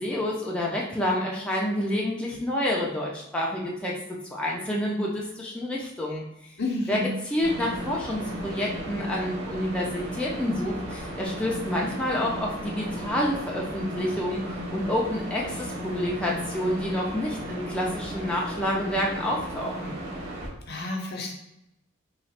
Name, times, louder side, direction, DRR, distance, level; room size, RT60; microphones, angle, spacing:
voice 1, 0.0-3.9 4.3-6.5 6.9-20.0, left 1 dB, 5° left, -4 dB, 0.5 m, -28 dB
voice 2, 6.6-7.1 20.7-21.3, left 2 dB, 55° left, 1 dB, 0.7 m, -30 dB
sound 1, 7.4-20.5, equal, 70° right, 1.2 m, -35 dB
3.1 x 2.4 x 4.2 m, 0.86 s
head